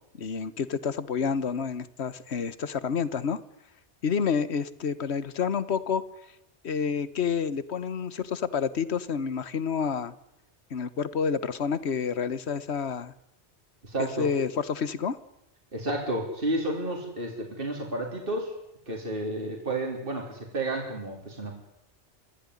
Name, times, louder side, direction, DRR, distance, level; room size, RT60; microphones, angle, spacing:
voice 1, 0.2-3.4 4.0-6.0 6.6-10.1 10.7-13.1 14.0-15.2, left 6 dB, 70° left, 16 dB, 1.4 m, -29 dB
voice 2, 13.8-14.3 15.7-18.5 18.9-21.6, right 2 dB, 50° right, 1 dB, 3.9 m, -31 dB
26.0 x 16.0 x 9.8 m, 0.82 s
omnidirectional pair, 1.2 m